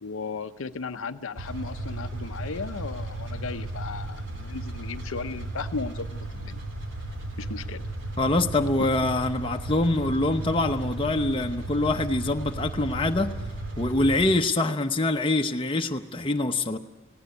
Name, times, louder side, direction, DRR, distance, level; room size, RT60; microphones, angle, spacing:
voice 1, 0.0-6.6 7.4-7.9 8.8-8.9, left 4 dB, 80° left, 10 dB, 0.7 m, -35 dB
sound 1, 1.4-14.3, right 2 dB, 65° right, 3.1 m, -35 dB
voice 2, 8.2-13.3 13.8-16.8, left 2 dB, 25° left, 5 dB, 0.8 m, -25 dB
18.5 x 16.5 x 9.6 m, 1.2 s
head